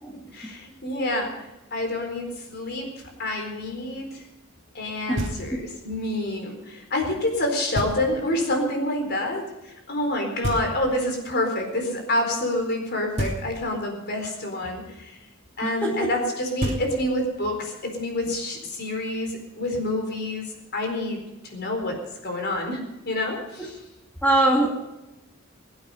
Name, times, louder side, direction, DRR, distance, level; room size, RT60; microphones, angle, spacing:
voice 1, 0.3-2.9 3.2-4.2 4.7-15.2 15.6-21.2 21.5-22.8 23.0-23.8, left 1 dB, 50° left, 2 dB, 4.2 m, -28 dB
Knock, 5.2-5.8 7.7-8.4 10.4-11.2 13.2-13.9 16.2-16.3 16.6-17.4, equal, 35° right, 3.0 m, -31 dB
voice 2, 15.6-16.1 23.6-23.7 24.2-24.7, right 1 dB, 5° left, -2 dB, 2.2 m, -22 dB
22.0 x 8.7 x 5.5 m, 1.0 s
head